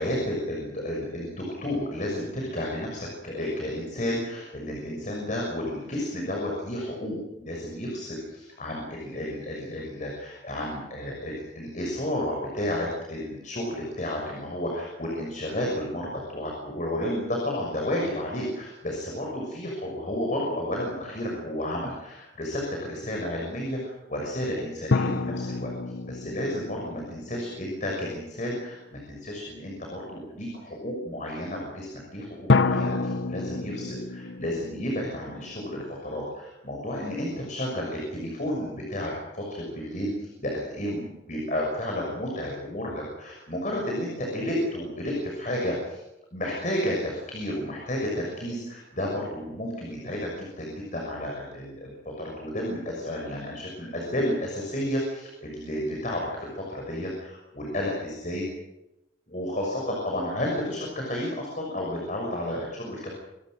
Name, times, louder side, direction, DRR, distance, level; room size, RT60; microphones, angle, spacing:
voice 1, 0.0-25.7 26.1-46.0 46.3-58.5 59.3-63.1, left 1 dB, 45° left, -1 dB, 6.5 m, -32 dB
sound 1, 24.9-28.3 32.5-35.8, left 3 dB, 90° left, 0.8 m, -28 dB
26.5 x 22.0 x 6.6 m, 0.92 s
head